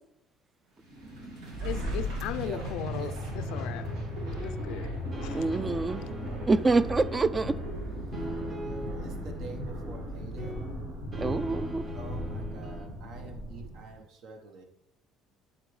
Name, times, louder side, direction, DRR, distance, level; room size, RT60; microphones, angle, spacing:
sound 1, 0.8-13.9, equal, 85° right, 2.1 m, -36 dB
voice 1, 1.6-3.9 4.4-4.9 5.2-5.4 6.0-6.1, left 11 dB, 80° left, 0.4 m, -38 dB
voice 2, 2.4-3.3 6.4-6.5 8.6-10.7 11.9-14.7, right 3 dB, 65° right, 1.0 m, -46 dB
sound 2, 3.3-12.9, equal, 40° right, 1.8 m, -42 dB
voice 3, 5.3-6.0 6.5-7.6 11.2-11.9, right 3 dB, 25° right, 0.3 m, -26 dB
11.0 x 4.0 x 3.2 m
supercardioid pair, 100°, 0 cm